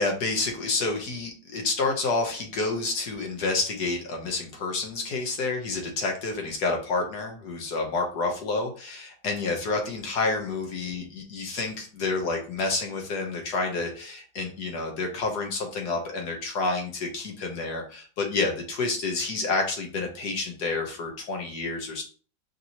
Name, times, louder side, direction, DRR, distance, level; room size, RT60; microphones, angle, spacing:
voice 1, 0.0-22.0, left 3 dB, 65° left, 2 dB, 1.4 m, -29 dB
5.3 x 2.9 x 2.8 m, 0.40 s
omnidirectional pair, 1.9 m